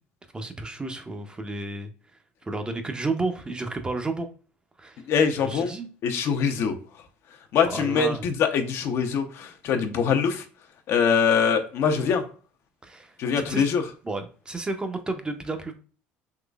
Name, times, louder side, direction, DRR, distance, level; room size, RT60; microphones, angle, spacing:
voice 1, 0.3-1.9 2.4-4.3 4.8-5.0 5.4-5.9 7.6-8.2 12.8-13.7 14.0-15.7, right 3 dB, 20° right, 6 dB, 0.6 m, -32 dB
voice 2, 5.1-5.7 6.0-6.7 7.5-10.4 10.9-12.2 13.2-13.8, left 6 dB, 60° left, 6 dB, 0.6 m, -23 dB
3.7 x 3.0 x 2.3 m, 0.38 s
supercardioid pair, 85°, 5 cm